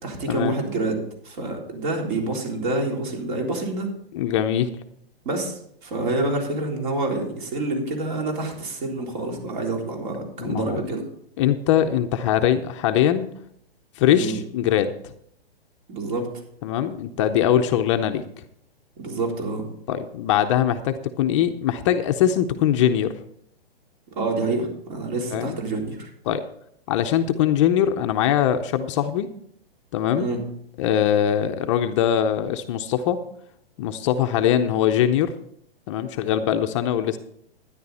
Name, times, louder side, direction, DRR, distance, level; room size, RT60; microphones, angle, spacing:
voice 1, 0.0-3.9 5.2-11.1 14.1-14.4 15.9-16.3 19.0-19.6 24.2-26.1 30.1-30.4, right 2 dB, 50° right, 1 dB, 3.7 m, -27 dB
voice 2, 4.1-4.7 10.4-10.8 11.4-13.3 14.0-14.9 16.6-18.2 19.9-23.1 25.3-25.6 26.3-26.4 26.9-29.3 29.9-30.3 30.8-33.2 33.8-35.3 35.9-37.2, left 10 dB, 30° left, 7 dB, 0.6 m, -22 dB
12.5 x 10.0 x 4.2 m, 0.69 s
hypercardioid pair, 145°, 31 cm